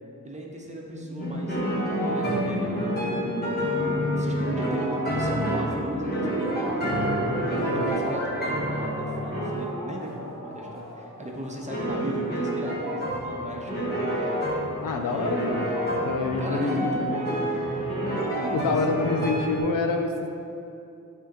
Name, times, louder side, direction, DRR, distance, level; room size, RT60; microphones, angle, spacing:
voice 1, 0.2-1.6 2.0-3.6 4.0-7.5 7.7-14.4 14.7-15.5 16.4-19.2, right 1 dB, 20° right, -1 dB, 0.8 m, -37 dB
sound 1, 0.9-12.7, right 1 dB, 60° right, 1.0 m, -34 dB
sound 2, 1.2-9.6 11.7-19.6, equal, 30° left, 1.3 m, -29 dB
voice 2, 7.6-8.0 14.8-15.7 15.9-17.2 18.5-20.3, left 3 dB, 75° left, 4 dB, 0.6 m, -27 dB
8.8 x 3.6 x 3.0 m, 2.7 s
wide cardioid pair, 90°, 33 cm